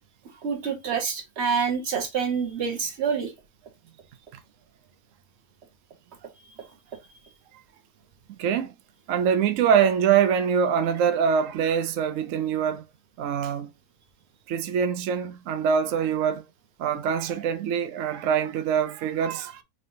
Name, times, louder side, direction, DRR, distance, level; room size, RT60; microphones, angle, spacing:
voice 1, 0.4-3.3, right 6 dB, 50° right, 1.2 m, -27 dB
voice 2, 8.4-8.7 9.1-12.8 13.2-13.7 14.5-16.4 16.8-19.6, right 7 dB, 70° right, 0.8 m, -24 dB
4.9 x 3.3 x 2.6 m
omnidirectional pair, 1.6 m